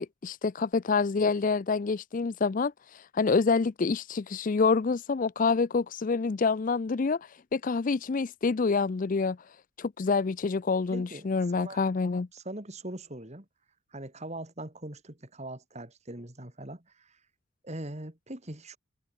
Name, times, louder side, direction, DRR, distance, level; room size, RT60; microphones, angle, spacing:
voice 1, 0.0-9.4 9.8-12.3, left 4 dB, 35° left, 0.4 m, -27 dB
voice 2, 10.9-11.3 11.5-11.8 12.3-13.5 13.9-17.2 17.6-18.8, right 1 dB, 30° right, 2.6 m, -41 dB
head